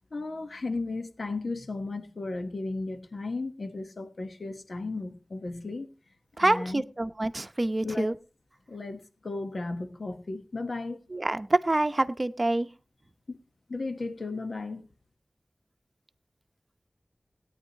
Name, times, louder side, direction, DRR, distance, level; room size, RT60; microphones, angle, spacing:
voice 1, 0.1-5.9 6.4-6.8 7.8-8.1 8.7-11.0 13.3-13.4 13.7-14.9, left 3 dB, 70° left, 1.3 m, -35 dB
voice 2, 6.4-8.1 11.1-12.7, right 2 dB, 40° right, 0.8 m, -26 dB
17.5 x 9.5 x 2.9 m
wide cardioid pair, 55°, 0 cm